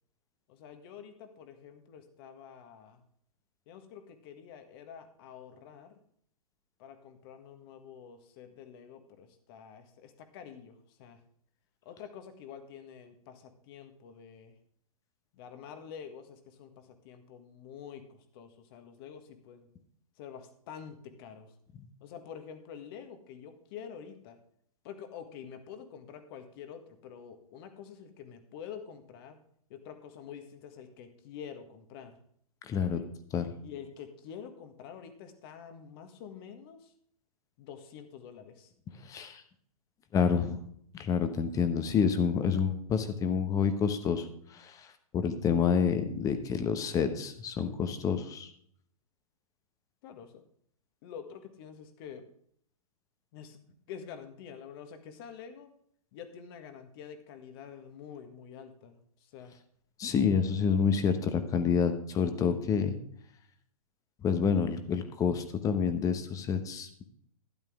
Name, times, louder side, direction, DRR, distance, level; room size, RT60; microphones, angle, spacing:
voice 1, 0.5-3.0 3.7-5.9 6.8-11.2 11.8-14.5 15.3-19.7 20.2-21.5 22.0-24.4 24.8-29.4 29.7-32.2 32.8-33.1 33.6-36.9 37.6-38.7 50.0-50.4 51.0-52.3 53.3-53.6 53.9-55.7 56.1-59.5, left 7 dB, 40° left, 8 dB, 1.6 m, -47 dB
voice 2, 32.6-33.0 33.3-33.5 39.0-39.4 40.1-40.6 40.9-44.3 44.5-44.9 45.1-48.5 60.0-62.9 64.2-67.1, left 6 dB, 20° left, 10 dB, 1.0 m, -28 dB
12.5 x 10.5 x 3.6 m, 0.66 s
figure-of-eight pair, 120°, 19 cm